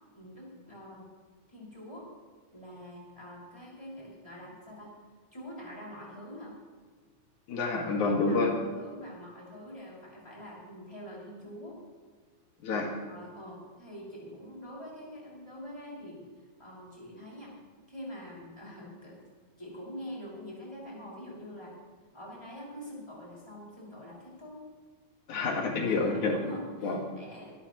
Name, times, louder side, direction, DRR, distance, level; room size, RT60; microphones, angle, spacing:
voice 1, 0.1-1.1 1.5-2.1 2.5-4.9 5.3-6.6 8.0-11.8 13.0-16.3 16.6-17.5 17.9-19.2 19.6-21.7 22.1-24.6 25.8-27.5, equal, 10° left, -5 dB, 5.6 m, -45 dB
voice 2, 7.5-8.5 12.6-13.0 25.3-26.4 26.8-27.0, left 3 dB, 85° left, 0 dB, 3.3 m, -28 dB
25.0 x 13.0 x 3.1 m, 1.5 s
omnidirectional pair, 3.3 m